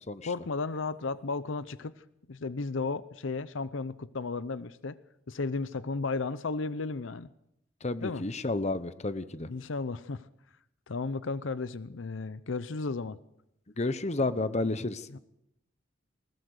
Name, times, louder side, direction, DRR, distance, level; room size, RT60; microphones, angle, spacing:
voice 1, 0.2-1.9 2.3-5.0 5.3-7.3 8.0-8.2 9.5-10.3 10.9-13.2 15.1-15.2, left 3 dB, 75° left, 16 dB, 0.7 m, -34 dB
voice 2, 7.8-9.5 13.8-15.1, left 2 dB, 35° left, 14 dB, 0.9 m, -31 dB
20.5 x 20.0 x 6.5 m, 0.80 s
head